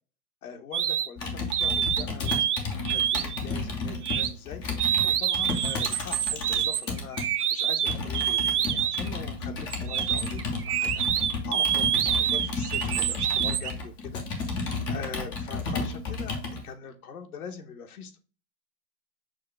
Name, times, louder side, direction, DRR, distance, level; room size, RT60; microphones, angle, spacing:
voice 1, 0.4-7.2 7.5-14.2 14.5-18.2, left 6 dB, 75° left, 1.1 m, -43 dB
sound 1, 0.7-1.1 1.5-2.6 2.9-3.4 4.0-4.3 4.8-9.1 9.7-13.7, right 10 dB, 90° right, 0.7 m, -26 dB
Computer keyboard, 1.2-7.3 7.9-16.6, left 3 dB, 10° left, 0.3 m, -32 dB
6.4 x 2.3 x 3.4 m
hypercardioid pair, 130°, 44 cm